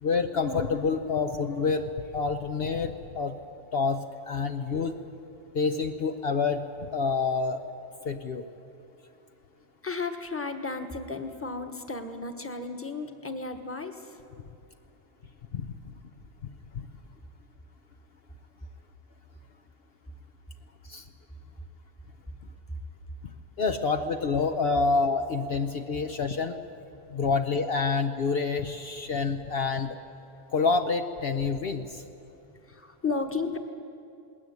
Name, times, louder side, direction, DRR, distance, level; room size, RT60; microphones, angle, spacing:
voice 1, 0.0-3.3 3.7-5.0 5.5-6.6 6.9-7.6 8.0-8.4 15.5-15.7 16.7-16.8 20.9-21.0 23.6-26.6 27.1-30.0 30.5-32.0, left 4 dB, 60° left, 6 dB, 1.0 m, -27 dB
voice 2, 9.8-14.2 27.0-27.2 32.5-33.6, left 4 dB, 10° left, 5 dB, 1.3 m, -34 dB
20.5 x 19.0 x 9.4 m, 2.7 s
omnidirectional pair, 1.2 m